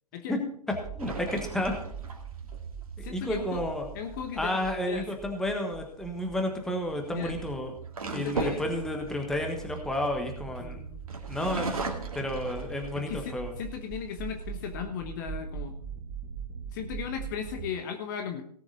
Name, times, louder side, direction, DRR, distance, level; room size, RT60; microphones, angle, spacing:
sound 1, 0.7-17.7, right 7 dB, 20° right, 1.4 m, -42 dB
voice 1, 0.9-1.7 3.0-3.9 4.3-7.7 8.1-10.8 11.3-11.8 12.1-13.5, left 1 dB, ahead, 3 dB, 1.4 m, -31 dB
sound 2, 1.0-2.6 5.5-5.8 6.8-10.6 11.1-13.2 13.7-13.8 14.2-14.8, right 3 dB, 60° right, 2.1 m, -37 dB
voice 2, 3.0-3.6 3.9-4.6 4.9-5.1 7.1-7.3 8.1-8.6 10.6-11.0 12.9-15.7 16.7-18.4, left 8 dB, 30° left, 6 dB, 1.0 m, -36 dB
17.5 x 7.1 x 4.1 m, 0.63 s
figure-of-eight pair, 130°, 21 cm